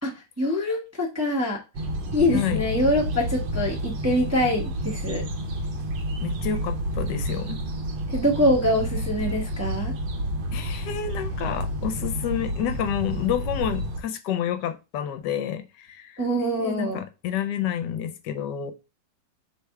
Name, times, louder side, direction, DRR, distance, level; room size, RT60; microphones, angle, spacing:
voice 1, 0.4-1.6 2.1-5.2 8.1-9.9 16.2-17.0, left 1 dB, 15° right, 0.6 m, -24 dB
sound 1, 1.7-14.0, equal, 90° right, 1.5 m, -30 dB
voice 2, 2.3-2.6 6.2-7.6 10.5-18.7, left 9 dB, 75° left, 1.2 m, -29 dB
3.4 x 3.3 x 4.5 m
omnidirectional pair, 1.9 m